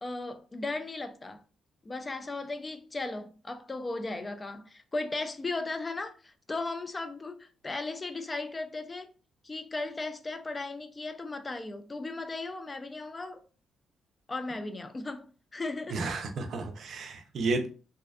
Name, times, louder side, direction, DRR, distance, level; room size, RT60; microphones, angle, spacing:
voice 1, 0.0-1.4 1.8-9.1 9.4-13.4 14.3-15.3 15.5-16.0, left 2 dB, 25° left, 0.3 m, -36 dB
voice 2, 15.9-17.7, right 3 dB, 60° right, 0.5 m, -32 dB
2.5 x 2.1 x 2.3 m
cardioid pair, 90°, 0 cm